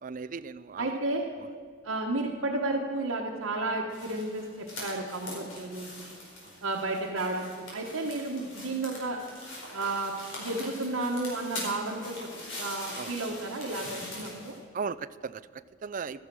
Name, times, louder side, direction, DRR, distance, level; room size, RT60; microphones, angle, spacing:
voice 1, 0.0-1.0 6.4-6.6 8.6-8.7 13.0-13.1 14.7-16.2, right 5 dB, 40° right, 15 dB, 0.4 m, -37 dB
voice 2, 0.8-1.3 1.8-5.9 6.6-9.2 9.7-12.3 12.6-14.6, right 2 dB, 85° right, -2 dB, 1.3 m, -32 dB
sound 1, 3.9-14.6, left 1 dB, 75° left, 5.1 m, -42 dB
15.0 x 13.0 x 6.2 m, 2.1 s
head